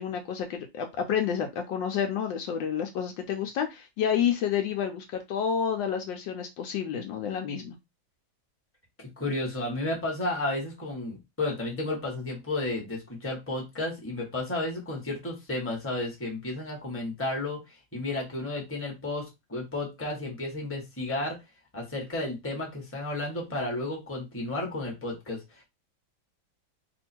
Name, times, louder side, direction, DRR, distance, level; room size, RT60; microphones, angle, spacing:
voice 1, 0.0-7.7, left 8 dB, 75° left, 5 dB, 1.2 m, -29 dB
voice 2, 9.0-21.4 21.7-25.6, left 2 dB, 10° left, 0 dB, 1.0 m, -32 dB
3.0 x 2.7 x 4.3 m, 0.21 s
omnidirectional pair, 2.2 m